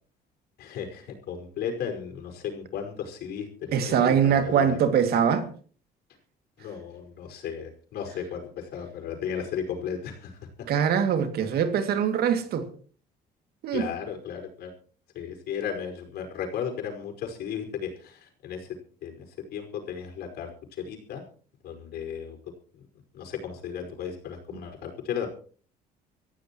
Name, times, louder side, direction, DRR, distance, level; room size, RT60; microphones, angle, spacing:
voice 1, 0.6-4.8 6.6-10.5 13.7-14.7 15.1-18.7 19.0-21.2 21.6-22.8 23.1-25.3, left 7 dB, 75° left, 5.3 m, -35 dB
voice 2, 3.7-5.5 10.7-12.7 13.6-13.9, right 8 dB, 65° right, 2.4 m, -23 dB
25.0 x 15.0 x 3.0 m
cardioid pair, 110°, 17 cm